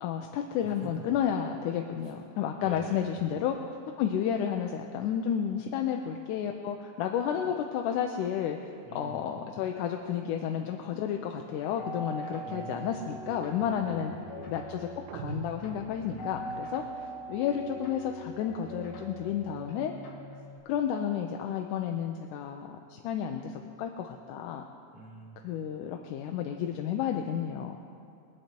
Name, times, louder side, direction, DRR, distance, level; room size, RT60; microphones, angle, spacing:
voice 1, 0.0-3.5 4.0-14.1 14.5-19.9 20.7-24.6 25.4-27.8, left 9 dB, 85° left, 3 dB, 2.2 m, -32 dB
voice 2, 0.6-1.0 2.6-3.2 8.8-9.2 12.4-13.3 13.6-14.6 16.0-16.5 16.8-16.9 24.9-25.4, right 2 dB, 55° right, -6 dB, 4.1 m, -46 dB
sound 1, 11.8-20.6, equal, 55° left, 2.5 m, -43 dB
sound 2, 15.1-16.5, right 8 dB, 85° right, 2.1 m, -42 dB
22.5 x 8.8 x 4.5 m, 2.5 s
omnidirectional pair, 3.6 m